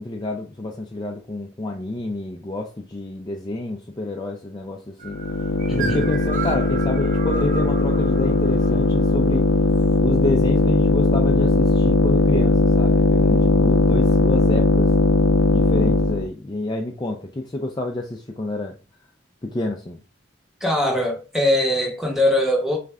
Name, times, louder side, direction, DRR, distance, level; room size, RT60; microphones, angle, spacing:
voice 1, 0.0-5.2 5.8-9.5 10.0-14.9 15.5-18.8 19.4-20.0, left 2 dB, 20° left, 0.4 m, -29 dB
sound 1, 5.0-16.3, left 2 dB, 75° left, 0.5 m, -18 dB
sound 2, 5.0-10.0, right 5 dB, 40° right, 0.6 m, -35 dB
voice 2, 5.7-6.1 20.6-22.8, left 1 dB, ahead, 0.8 m, -21 dB
3.7 x 3.2 x 3.4 m
head